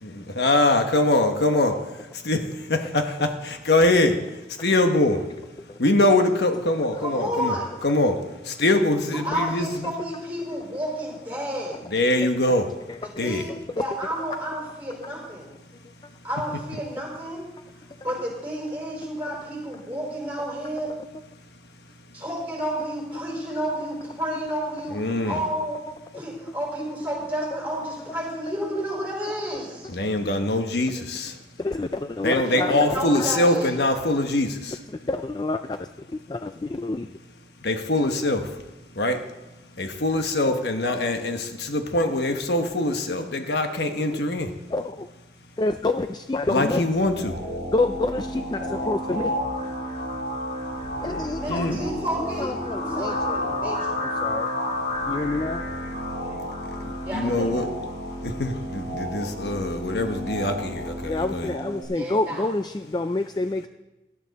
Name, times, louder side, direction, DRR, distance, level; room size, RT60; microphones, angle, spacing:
voice 1, 0.0-1.8 2.1-5.3 5.8-7.5 7.8-9.9 11.9-12.7 13.2-13.5 24.9-25.4 29.9-31.4 32.2-34.8 37.6-38.6 39.0-39.2 39.8-44.5 46.5-47.4 51.5-51.8 56.8-57.7 58.2-61.5, left 2 dB, 75° left, 6 dB, 1.1 m, -23 dB
voice 2, 7.0-7.7 9.1-11.8 13.0-15.5 16.2-17.5 18.0-20.9 22.1-25.8 26.1-29.9 32.5-33.8 49.1-49.3 51.3-54.0 56.1-56.4 57.0-57.7 61.9-62.5, equal, 10° right, -3 dB, 4.6 m, -31 dB
voice 3, 13.5-13.8 19.0-19.1 20.9-21.0 28.7-28.9 30.2-30.3 31.6-33.3 35.0-37.2 38.0-38.1 40.3-40.6 41.0-41.2 42.0-42.4 44.1-45.1 45.6-46.8 47.7-49.4 51.0-53.4 54.0-54.5 55.1-55.7 57.2-57.5 61.1-63.7, left 2 dB, 25° left, 9 dB, 0.3 m, -29 dB
sound 1, 46.9-61.8, left 1 dB, 55° left, 6.2 m, -31 dB
17.5 x 12.0 x 4.1 m, 1.1 s
head